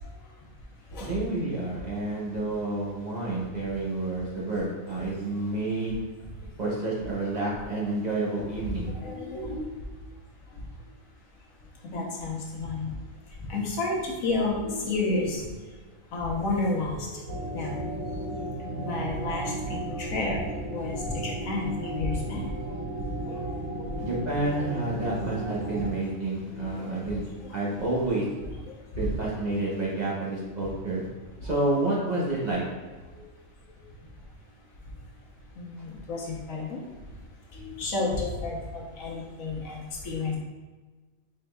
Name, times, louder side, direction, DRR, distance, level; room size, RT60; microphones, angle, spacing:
voice 1, 1.0-6.0 6.6-8.9 24.0-27.2 27.5-28.2 29.0-31.1 31.4-32.6, right 2 dB, 40° right, -5 dB, 0.8 m, -29 dB
voice 2, 8.7-9.8 11.8-12.9 13.5-15.4 16.1-17.8 18.8-20.4 20.7-22.5 23.2-23.4 23.9-24.0 25.1-25.2 26.6-26.8 28.4-28.5 29.0-29.1 35.6-36.8 37.5-40.4, left 2 dB, 80° left, -2 dB, 1.3 m, -31 dB
sound 1, 17.3-25.9, right 2 dB, 30° left, 1.0 m, -34 dB
5.3 x 3.8 x 2.2 m, 1.3 s
omnidirectional pair, 1.4 m